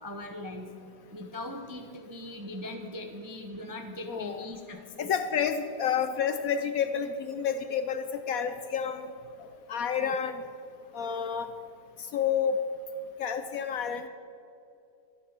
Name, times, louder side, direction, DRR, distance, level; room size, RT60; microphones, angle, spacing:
voice 1, 0.0-0.7 1.1-5.1 10.0-10.1, left 1 dB, 20° right, 4 dB, 0.5 m, -40 dB
voice 2, 4.1-4.5 5.0-9.0 9.4-10.4 10.9-11.5 12.1-12.6 13.2-14.1, left 7 dB, 65° left, 9 dB, 0.9 m, -30 dB
13.0 x 11.0 x 6.7 m, 2.8 s
omnidirectional pair, 1.9 m